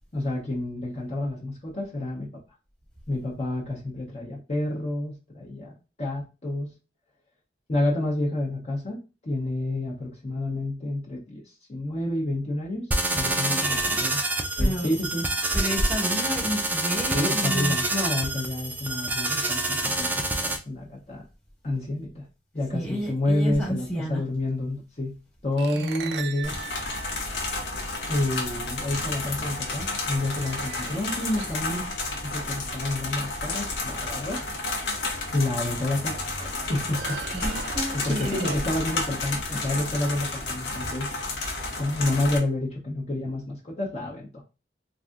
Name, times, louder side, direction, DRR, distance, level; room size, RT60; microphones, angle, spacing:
voice 1, 0.1-2.3 3.1-5.7 6.0-6.7 7.7-9.0 9.2-11.4 11.7-14.2 14.5-15.3 17.1-21.2 21.6-22.3 22.5-25.2 25.4-26.6 28.1-31.9 32.2-34.4 35.3-37.2 37.6-41.1 41.8-44.4, left 1 dB, 40° left, 0.7 m, -29 dB
sound 1, 12.9-20.6, right 2 dB, 10° right, 0.4 m, -27 dB
voice 2, 13.5-13.8 14.6-14.9 15.5-17.8 22.7-24.2 25.8-26.3 37.3-38.5, equal, 5° left, 1.1 m, -29 dB
sound 2, 25.6-28.1 29.3-29.4 30.1-31.7 35.0-35.1 35.5-35.6 36.8-38.9, right 7 dB, 80° right, 0.4 m, -39 dB
sound 3, 26.4-42.4, left 3 dB, 85° left, 0.8 m, -31 dB
3.3 x 2.6 x 2.4 m
head